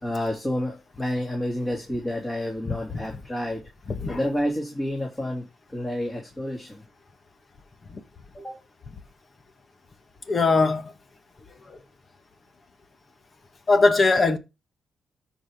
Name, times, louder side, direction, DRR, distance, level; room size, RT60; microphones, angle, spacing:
voice 1, 0.0-3.7 4.1-5.5 5.7-6.8 8.3-8.6, left 1 dB, 15° left, 3.4 m, -29 dB
voice 2, 10.3-10.9 11.7-11.8 13.7-14.4, left 3 dB, 40° left, 1.6 m, -20 dB
13.0 x 5.2 x 3.8 m
cardioid pair, 85°, 0 cm